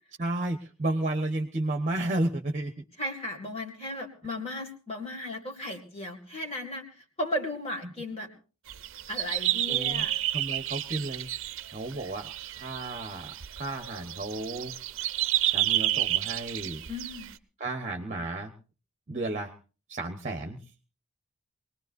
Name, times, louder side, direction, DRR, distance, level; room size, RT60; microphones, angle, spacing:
voice 1, 0.2-2.7 7.8-7.9 9.7-10.0 10.3-11.3 11.7-14.7 15.5-16.8 17.6-18.5 19.1-19.5 19.9-20.6, right 2 dB, 35° right, 5 dB, 1.1 m, -32 dB
voice 2, 3.0-8.3 9.1-10.1 16.9-17.3, left 1 dB, 25° left, 1 dB, 2.2 m, -35 dB
sound 1, 8.7-17.3, right 14 dB, 60° right, 0.7 m, -31 dB
24.5 x 19.5 x 2.6 m, 0.36 s
head